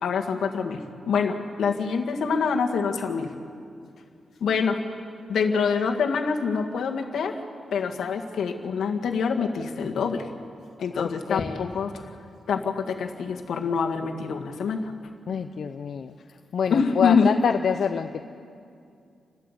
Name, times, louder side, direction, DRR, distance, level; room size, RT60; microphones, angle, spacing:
voice 1, 0.0-3.3 4.4-4.8 5.3-7.4 7.7-10.3 10.8-12.0 12.5-14.9 16.7-17.3, left 5 dB, 85° left, 3 dB, 1.9 m, -25 dB
voice 2, 10.9-11.7 15.3-16.1 16.5-18.2, left 7 dB, 65° left, 7 dB, 0.7 m, -27 dB
29.0 x 12.5 x 8.2 m, 2.4 s
wide cardioid pair, 120°, 0 cm